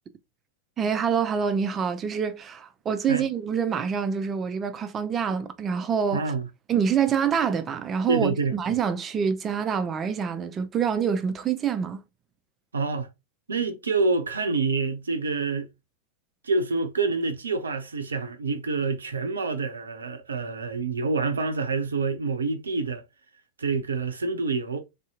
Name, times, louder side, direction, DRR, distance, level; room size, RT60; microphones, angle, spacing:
voice 1, 0.8-6.2 6.7-12.0, right 7 dB, 25° right, 0.5 m, -26 dB
voice 2, 6.1-6.5 8.1-8.6 12.7-13.1 13.5-15.7 16.4-23.0 23.6-24.8, right 4 dB, 70° right, 0.6 m, -27 dB
3.3 x 2.7 x 2.7 m
figure-of-eight pair, 90°, 0 cm